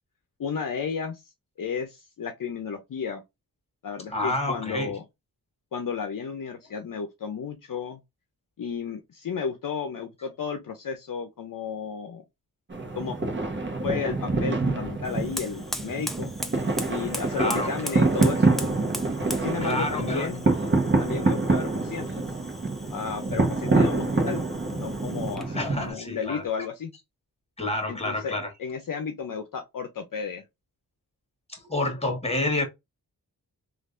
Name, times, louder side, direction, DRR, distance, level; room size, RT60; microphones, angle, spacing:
voice 1, 0.4-1.2 1.6-3.2 3.8-5.0 5.7-8.0 8.6-12.2 12.9-13.2 13.8-16.3 16.9-18.5 19.4-20.4 21.0-22.2 22.9-26.9 27.9-30.4, left 6 dB, 55° left, 0.6 m, -33 dB
voice 2, 4.1-4.9 17.4-17.7 19.6-20.3 25.5-26.4 27.6-28.5 31.5-32.6, left 2 dB, 15° left, 1.6 m, -28 dB
sound 1, 12.7-25.9, right 3 dB, 30° right, 1.0 m, -26 dB
Fire, 15.0-25.6, equal, ahead, 0.6 m, -40 dB
3.2 x 2.5 x 2.5 m
cardioid pair, 55°, 39 cm